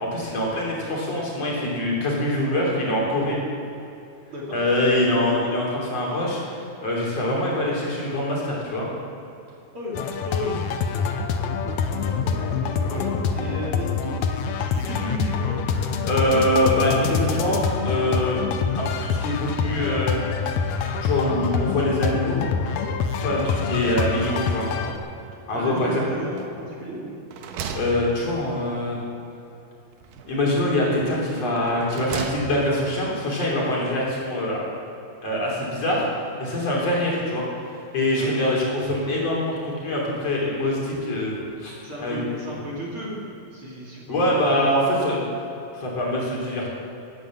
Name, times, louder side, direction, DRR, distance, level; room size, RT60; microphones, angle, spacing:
voice 1, 0.1-3.4 4.5-8.9 16.0-18.4 18.8-20.2 21.0-22.4 23.2-24.7 25.5-26.0 27.7-29.0 30.3-34.6 35.2-36.0 36.4-37.4 37.9-41.3 41.6-41.7 42.0-42.5 44.1-45.2 45.7-46.7, left 1 dB, 50° left, -4 dB, 4.1 m, -24 dB
voice 2, 4.3-4.6 9.7-10.6 12.1-14.1 14.7-15.8 24.7-25.0 25.5-27.1 36.6-36.8 38.0-38.5 41.8-43.2 43.5-44.4, equal, 40° right, -5 dB, 3.4 m, -34 dB
sound 1, 10.0-25.0, left 6 dB, 70° left, 2.0 m, -26 dB
sound 2, 26.3-26.8 27.1-28.7 30.0-30.9 31.6-32.8, right 6 dB, 80° right, 2.6 m, -36 dB
18.0 x 9.5 x 7.3 m, 2.8 s
omnidirectional pair, 3.9 m